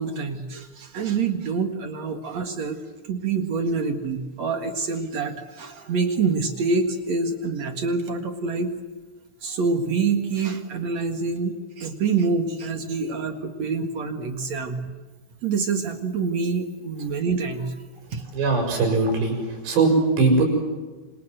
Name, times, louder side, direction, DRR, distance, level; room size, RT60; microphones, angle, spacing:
voice 1, 0.0-2.8 3.1-8.7 9.4-15.0 15.4-17.7 18.1-18.2, right 4 dB, 50° right, 6 dB, 2.4 m, -26 dB
voice 2, 18.3-20.4, right 3 dB, 85° right, 3 dB, 8.8 m, -20 dB
28.0 x 26.5 x 8.0 m, 1.3 s
omnidirectional pair, 4.8 m